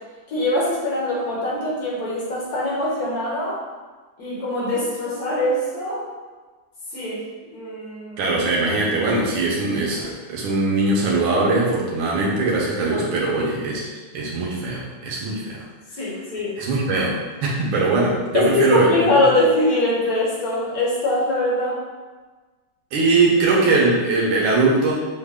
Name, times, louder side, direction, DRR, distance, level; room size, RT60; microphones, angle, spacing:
voice 1, 0.3-3.6 4.2-6.1 6.9-7.2 7.5-8.3 12.9-13.0 16.0-16.6 18.3-21.8, left 2 dB, 55° left, -4 dB, 1.4 m, -22 dB
voice 2, 8.2-13.9 14.1-15.6 16.6-19.1 22.9-24.9, right 3 dB, 90° right, -4 dB, 1.6 m, -21 dB
6.4 x 2.1 x 3.5 m, 1.3 s
omnidirectional pair, 2.1 m